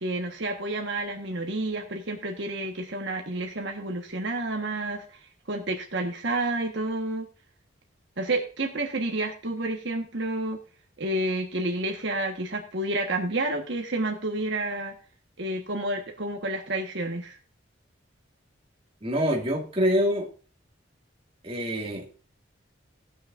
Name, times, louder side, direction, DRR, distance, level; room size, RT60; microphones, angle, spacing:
voice 1, 0.0-5.2 5.5-7.3 8.2-10.6 11.0-14.9 15.4-17.4, right 2 dB, 65° right, 2 dB, 1.4 m, -30 dB
voice 2, 19.0-20.3 21.4-22.1, equal, 30° right, 0 dB, 2.1 m, -25 dB
18.5 x 6.4 x 2.5 m, 0.38 s
head